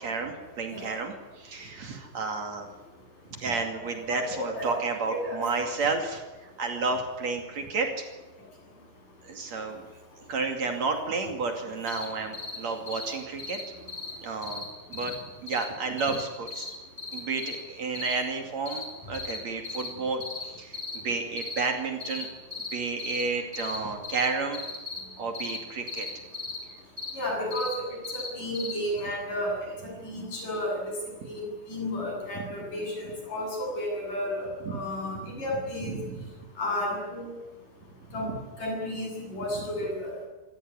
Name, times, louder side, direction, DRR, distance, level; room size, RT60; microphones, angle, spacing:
voice 1, 0.0-2.7 3.3-8.0 9.2-9.8 10.2-13.6 14.2-16.7 17.1-22.3 22.7-24.6 25.2-26.1 32.4-32.5 35.3-35.4 35.8-36.3 38.1-38.4 39.6-39.7, right 4 dB, 55° right, 4 dB, 3.6 m, -31 dB
voice 2, 4.1-4.7 5.1-5.4 27.2-27.9 28.1-29.6 29.8-31.0 31.3-35.9 36.6-37.3 38.1-38.3 38.6-40.1, left 1 dB, 65° left, 0 dB, 9.5 m, -32 dB
sound 1, 11.9-12.0 12.3-12.6 12.9-13.1 13.4-13.6 13.9-14.1 14.4-14.6 14.9-15.1 15.5-15.6 16.0-16.2 16.5-16.7 17.0-17.5 17.9-18.1 18.6-18.8 19.1-19.4 19.6-19.9 20.2-20.4 20.7-21.0 21.4-21.6 22.0-22.2 22.5-22.7 23.0-23.2 23.5-23.8 24.0-24.3 24.5-25.0 25.3-25.6 25.9-26.6 27.0-27.1 27.5-27.7 28.0-28.3 28.5-28.7 29.0-29.1, left 4 dB, 20° right, 6.0 m, -36 dB
26.5 x 17.0 x 9.7 m, 1.1 s
omnidirectional pair, 4.0 m